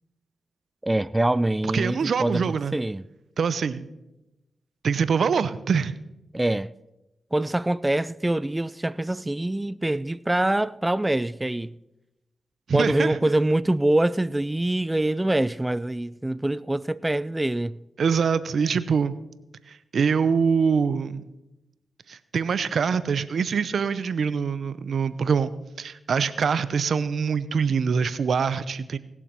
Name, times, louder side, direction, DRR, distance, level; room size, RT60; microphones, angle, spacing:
voice 1, 0.8-3.0 6.3-6.7 7.3-11.7 12.7-17.8, right 1 dB, 15° right, 0.4 m, -24 dB
voice 2, 1.7-2.7 3.4-3.9 4.8-5.9 12.7-13.3 18.0-19.1 19.7-21.2 22.1-25.5 25.8-29.0, right 6 dB, 70° right, 0.7 m, -24 dB
19.0 x 7.2 x 5.7 m
supercardioid pair, 45°, 0 cm